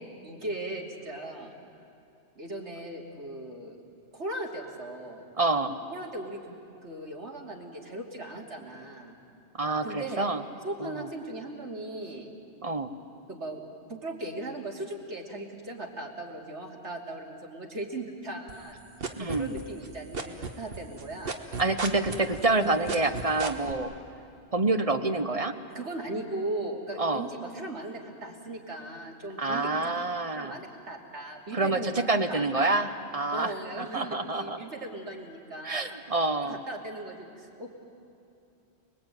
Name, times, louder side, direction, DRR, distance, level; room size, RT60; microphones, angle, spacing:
voice 1, 0.2-1.5 2.3-3.8 4.1-5.3 5.9-6.6 6.8-9.2 9.8-10.3 10.6-12.3 13.3-13.6 13.9-18.8 19.2-21.3 21.9-22.0 22.6-22.8 25.7-29.8 30.3-32.0 32.3-33.0 33.3-36.0 36.4-37.7, right 2 dB, 75° right, -1 dB, 3.2 m, -38 dB
voice 2, 5.4-5.8 9.6-10.4 10.8-11.1 12.6-12.9 19.2-19.5 21.6-23.9 24.5-25.5 27.0-27.3 29.4-30.6 31.5-34.6 35.6-36.6, right 2 dB, 30° right, 8 dB, 1.1 m, -27 dB
sound 1, 18.5-19.9 20.1-23.7, right 4 dB, 55° right, 1.6 m, -33 dB
29.5 x 21.0 x 9.1 m, 2.7 s
omnidirectional pair, 1.2 m